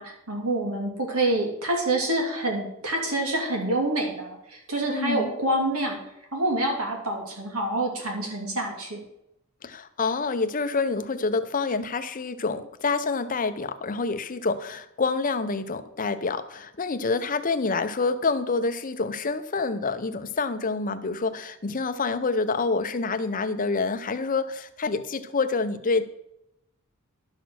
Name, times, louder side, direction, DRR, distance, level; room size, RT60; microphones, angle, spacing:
voice 1, 0.0-6.0 6.3-9.0, right 1 dB, 75° right, 1 dB, 2.7 m, -27 dB
voice 2, 4.9-5.3 9.6-26.0, left 4 dB, 40° left, 10 dB, 0.7 m, -27 dB
11.5 x 6.1 x 6.4 m, 0.82 s
head